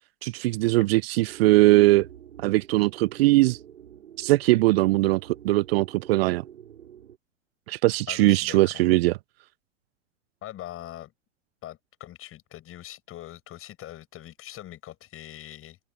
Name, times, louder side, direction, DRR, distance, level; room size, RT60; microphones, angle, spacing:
voice 1, 0.2-2.1 2.4-3.6 4.2-6.4 7.7-9.1, right 20 dB, 50° right, 0.6 m, -20 dB
sound 1, 1.3-7.2, right 10 dB, 70° right, 6.1 m, -47 dB
voice 2, 8.1-8.8 10.4-11.1 11.6-15.8, left 13 dB, 35° left, 7.3 m, -42 dB
figure-of-eight pair, 95°, 39 cm